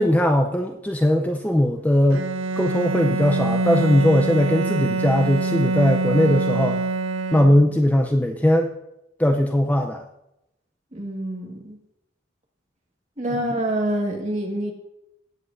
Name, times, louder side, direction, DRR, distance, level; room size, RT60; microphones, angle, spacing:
voice 1, 0.0-2.3 2.6-6.8 7.3-8.7 9.2-10.0 13.4-13.5, equal, 10° left, 3 dB, 0.5 m, -19 dB
Bowed string instrument, 2.1-7.9, right 3 dB, 85° right, 0.6 m, -25 dB
voice 2, 10.9-11.8 13.2-14.7, right 1 dB, 35° right, 1 dB, 1.6 m, -26 dB
17.5 x 7.7 x 2.6 m, 0.84 s
head